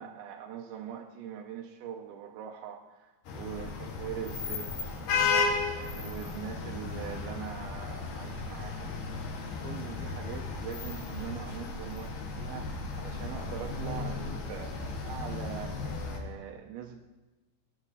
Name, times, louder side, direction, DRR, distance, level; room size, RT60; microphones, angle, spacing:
voice 1, 0.0-4.7 5.1-9.3 9.6-17.0, right 8 dB, 85° right, 1 dB, 2.3 m, -42 dB
sound 1, 3.2-16.2, left 4 dB, 65° left, 2.7 m, -34 dB
18.5 x 9.1 x 2.7 m, 1.2 s
omnidirectional pair, 4.7 m